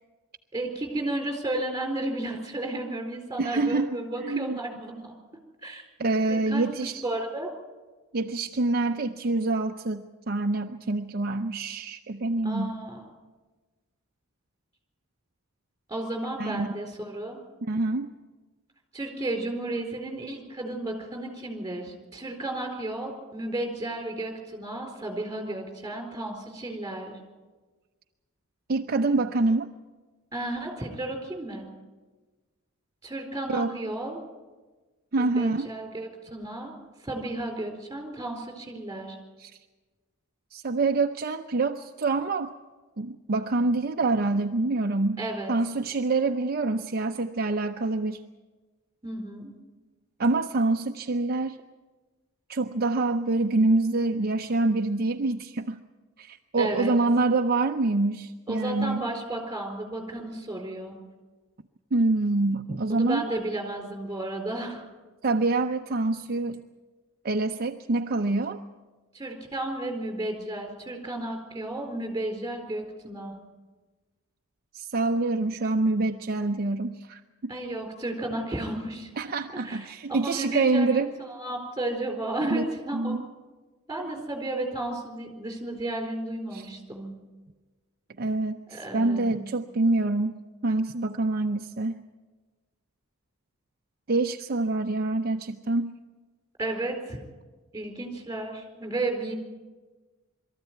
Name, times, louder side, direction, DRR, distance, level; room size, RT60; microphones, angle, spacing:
voice 1, 0.5-5.1 5.6-5.8 6.3-7.5 12.4-13.0 15.9-17.4 18.9-27.2 30.3-31.6 33.0-34.2 35.2-36.7 37.0-39.2 45.2-45.5 49.0-49.5 56.6-57.0 58.5-61.0 62.9-64.9 69.1-73.4 77.5-79.1 79.6-83.2 83.9-87.1 88.7-89.5 96.6-97.2 97.7-99.3, right 1 dB, 15° right, 3 dB, 4.2 m, -33 dB
voice 2, 3.4-4.6 6.0-7.0 8.1-12.8 16.4-16.7 17.7-18.1 28.7-29.7 33.5-33.8 35.1-35.7 39.4-39.5 40.5-42.5 43.0-45.2 45.5-48.2 50.2-51.6 52.5-55.8 56.2-59.0 61.9-63.2 65.2-66.6 67.2-68.6 74.7-77.5 79.2-81.1 82.5-82.7 82.9-83.2 86.5-86.7 88.2-90.4 90.6-92.0 94.1-95.9, right 3 dB, 45° right, 4 dB, 0.6 m, -26 dB
22.0 x 14.0 x 9.3 m, 1.3 s
head